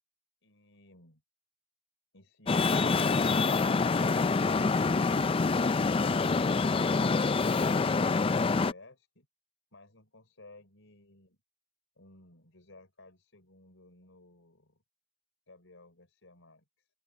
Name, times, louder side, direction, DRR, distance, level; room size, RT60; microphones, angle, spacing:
voice 1, 0.4-1.2 9.7-11.4 12.0-14.8 15.5-16.9, left 2 dB, 70° left, 4.9 m, -57 dB
Traffic noise roadway noise, 2.5-8.7, left 4 dB, 25° left, 0.4 m, -26 dB
open air
head